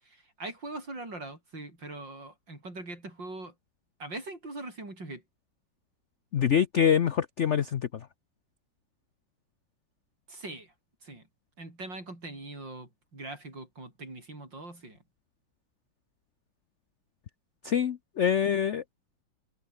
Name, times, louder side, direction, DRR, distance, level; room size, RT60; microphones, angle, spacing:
voice 1, 0.0-3.5 4.0-5.2 10.3-10.7 11.0-11.3 11.6-15.0, right 2 dB, 65° right, 8.3 m, -42 dB
voice 2, 6.3-7.9 17.6-18.8, left 8 dB, 60° left, 0.7 m, -25 dB
omnidirectional pair, 2.2 m